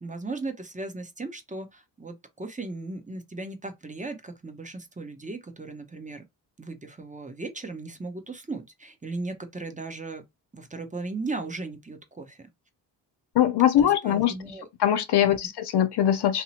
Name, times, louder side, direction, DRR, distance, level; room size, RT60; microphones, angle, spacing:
voice 1, 0.0-6.2 6.6-10.2 10.5-12.5 13.8-14.7 15.2-15.3, right 3 dB, 15° right, 0.7 m, -37 dB
voice 2, 13.4-14.3 14.8-16.4, left 11 dB, 65° left, 0.5 m, -21 dB
2.7 x 2.0 x 2.9 m
supercardioid pair, 50°, 44 cm